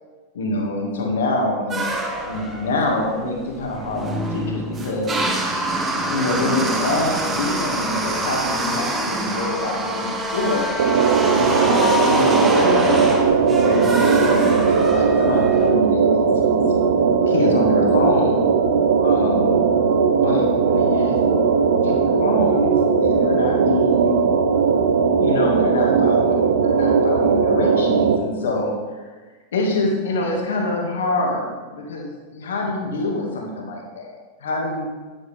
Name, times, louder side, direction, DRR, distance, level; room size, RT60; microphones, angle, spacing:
voice 1, 0.3-1.9 2.2-5.2 5.9-10.7 11.3-13.0 13.4-16.6 17.3-18.5 19.0-19.6 20.1-21.2 21.6-24.2 25.2-29.1 29.5-34.9, left 2 dB, 60° left, 0 dB, 2.1 m, -25 dB
sound 1, 1.7-15.7, right 1 dB, 25° right, 1.7 m, -25 dB
sound 2, 10.8-28.2, right 5 dB, 60° right, 0.6 m, -18 dB
9.8 x 8.5 x 3.5 m, 1.3 s
figure-of-eight pair, 90°, 0 cm